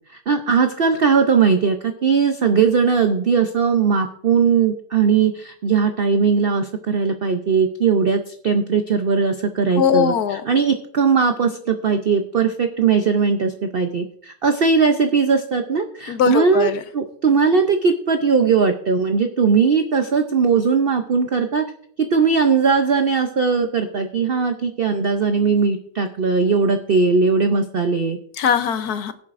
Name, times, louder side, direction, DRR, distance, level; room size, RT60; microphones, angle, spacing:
voice 1, 0.3-10.1 10.5-21.6 22.0-28.2, right 5 dB, 90° right, 6 dB, 0.5 m, -19 dB
voice 2, 9.8-10.4 16.1-16.8 28.4-29.1, left 8 dB, 65° left, 10 dB, 1.2 m, -20 dB
21.5 x 7.4 x 2.5 m, 0.64 s
omnidirectional pair, 1.9 m